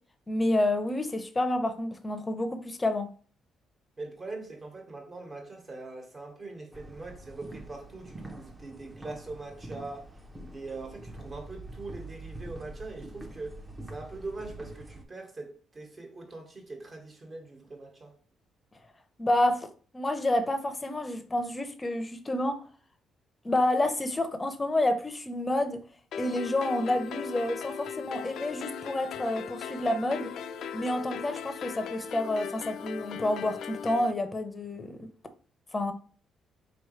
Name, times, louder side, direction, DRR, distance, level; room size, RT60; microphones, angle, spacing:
voice 1, 0.3-3.1 19.2-19.7 19.9-22.6 23.4-25.8 26.2-30.3 30.7-35.1 35.7-35.9, left 1 dB, 20° left, 0.7 m, -29 dB
voice 2, 4.0-13.6 13.9-18.1, right 3 dB, 35° right, 1.6 m, -42 dB
sound 1, 6.7-15.0, right 2 dB, 15° right, 0.8 m, -45 dB
sound 2, 26.1-34.1, left 7 dB, 70° left, 0.4 m, -38 dB
4.2 x 3.1 x 3.1 m
cardioid pair, 90°, 0 cm